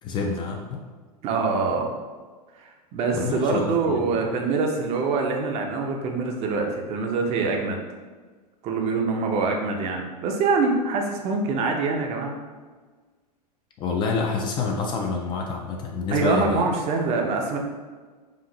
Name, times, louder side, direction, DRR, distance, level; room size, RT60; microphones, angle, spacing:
voice 1, 0.0-0.9 3.1-4.2 13.8-16.7, left 4 dB, 25° left, 1 dB, 0.4 m, -27 dB
voice 2, 1.2-1.9 2.6-7.8 8.6-12.4 16.1-17.6, right 4 dB, 30° right, 2 dB, 0.6 m, -25 dB
5.0 x 2.5 x 2.7 m, 1.4 s
figure-of-eight pair, 90°, 21 cm